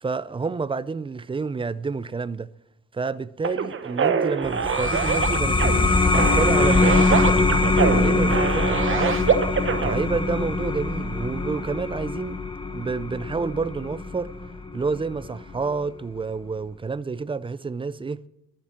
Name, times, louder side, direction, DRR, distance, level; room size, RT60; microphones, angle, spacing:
voice 1, 0.0-2.5 2.9-7.5 7.9-9.3 9.8-12.4 12.7-14.3 14.7-18.2, right 4 dB, 15° right, 0.4 m, -29 dB
sound 1, 3.4-9.9, right 6 dB, 40° right, 1.1 m, -25 dB
sound 2, 4.4-15.6, left 3 dB, 15° left, 1.1 m, -23 dB
12.0 x 7.5 x 8.6 m
cardioid pair, 120°, 32 cm